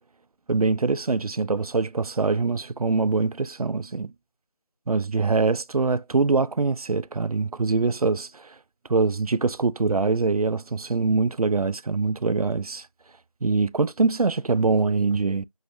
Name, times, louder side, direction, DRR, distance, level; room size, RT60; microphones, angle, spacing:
voice 1, 0.5-4.1 4.9-8.4 8.9-12.8 13.4-15.4, right 4 dB, 75° right, 0.4 m, -23 dB
5.5 x 3.1 x 2.6 m
figure-of-eight pair, 180°, 19 cm